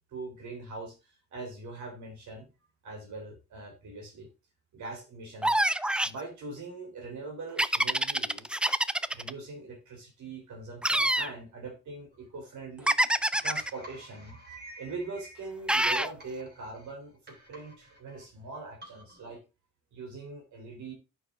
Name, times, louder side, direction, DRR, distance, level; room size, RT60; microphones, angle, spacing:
voice 1, 0.1-2.5 2.8-4.3 4.7-5.6 6.0-8.5 9.1-12.9 13.4-14.4 14.8-17.2 17.5-19.4 19.9-20.9, right 3 dB, 70° right, 2 dB, 3.0 m, -42 dB
sound 1, 5.4-6.2 7.6-9.3 10.8-11.3 12.9-13.7 15.7-16.1, right 1 dB, 5° right, 0.3 m, -26 dB
sound 2, 12.1-19.4, right 1 dB, 35° right, 3.5 m, -52 dB
11.5 x 4.7 x 3.5 m, 0.28 s
cardioid pair, 90°, 30 cm